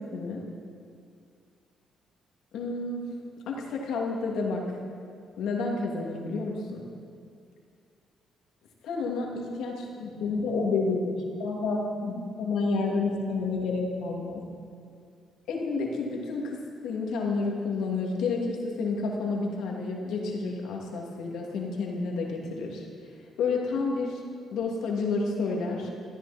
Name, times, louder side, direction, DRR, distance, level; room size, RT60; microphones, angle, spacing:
voice 1, 2.5-3.0 3.5-4.7 5.4-6.8 8.8-14.4 15.5-22.9 23.4-24.2 24.5-25.9, left 3 dB, 80° left, -1 dB, 2.8 m, -30 dB
18.5 x 14.5 x 4.5 m, 2.3 s
cardioid pair, 90°, 0 cm